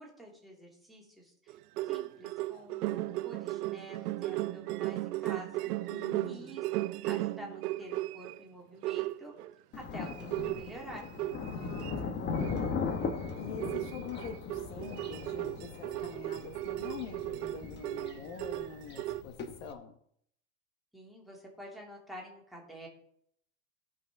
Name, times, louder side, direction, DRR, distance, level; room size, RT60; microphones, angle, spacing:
voice 1, 0.0-1.6 1.8-6.6 7.0-9.3 9.7-11.1 20.9-22.9, equal, ahead, -2 dB, 2.5 m, -49 dB
sound 1, 1.5-8.4 8.8-9.5 10.1-11.9 12.3-12.6 12.9-13.1 13.6-19.2, right 17 dB, 90° right, 0.6 m, -36 dB
voice 2, 5.9-6.6 11.4-12.8 13.4-20.0, left 6 dB, 60° left, 8 dB, 1.2 m, -45 dB
Thunder, 9.7-19.7, left 5 dB, 25° left, 1.0 m, -39 dB
16.5 x 5.8 x 3.5 m, 0.68 s
supercardioid pair, 135°, 45 cm